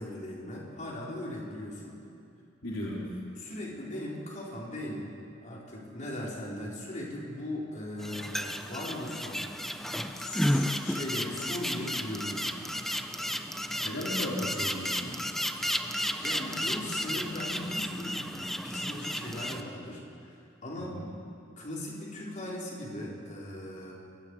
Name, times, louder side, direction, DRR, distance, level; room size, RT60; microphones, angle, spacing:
voice 1, 0.0-2.0 3.4-5.1 5.4-9.5 10.1-12.5 16.2-18.2 18.6-20.3 20.6-21.0 21.6-23.9, left 1 dB, 40° left, -4 dB, 4.9 m, -38 dB
voice 2, 2.6-3.1 13.8-15.2 20.8-21.1, left 1 dB, 70° left, -4 dB, 3.6 m, -35 dB
sound 1, 8.0-19.6, equal, ahead, 0.8 m, -33 dB
29.0 x 23.5 x 5.0 m, 2.4 s
head